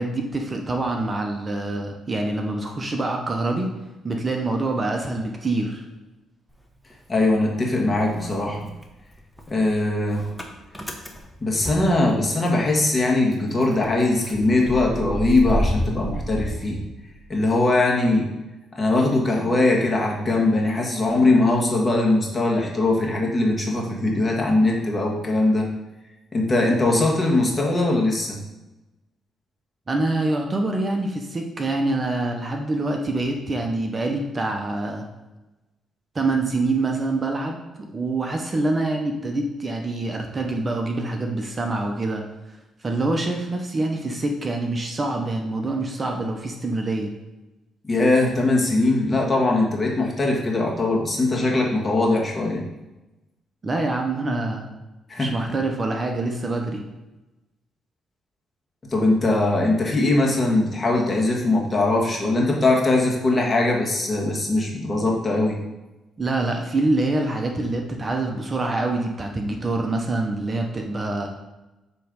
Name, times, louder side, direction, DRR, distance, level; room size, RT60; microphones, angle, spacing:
voice 1, 0.0-3.7 4.0-5.8 29.9-35.1 36.1-42.2 42.8-47.1 53.6-54.7 55.2-56.8 66.2-71.3, right 2 dB, 30° right, 2 dB, 0.9 m, -25 dB
Motor vehicle (road) / Engine starting, 6.5-7.7 8.0-12.7 13.0-13.1 13.3-17.4, equal, 5° left, 1.0 m, -31 dB
voice 2, 7.1-8.7 9.5-10.2 11.4-16.8 17.3-18.3 18.7-25.7 26.3-28.4 47.8-52.6 55.1-55.3 58.9-65.6, left 2 dB, 30° left, -1 dB, 1.6 m, -21 dB
7.6 x 3.2 x 5.2 m, 1.0 s
cardioid pair, 90°, 0 cm